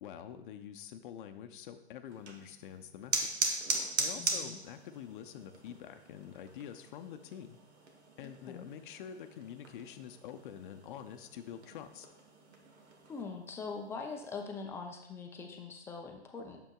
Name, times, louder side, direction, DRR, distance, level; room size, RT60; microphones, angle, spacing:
voice 1, 0.0-3.4 4.0-7.6 8.2-12.1, left 9 dB, 50° left, 8 dB, 0.6 m, -46 dB
sound 1, 2.1-13.2, right 3 dB, 70° right, 1.5 m, -40 dB
voice 2, 4.2-4.6 8.2-8.7 13.1-16.6, left 4 dB, 10° left, 3 dB, 0.4 m, -43 dB
8.8 x 6.9 x 2.3 m, 0.85 s
hypercardioid pair, 125°, 34 cm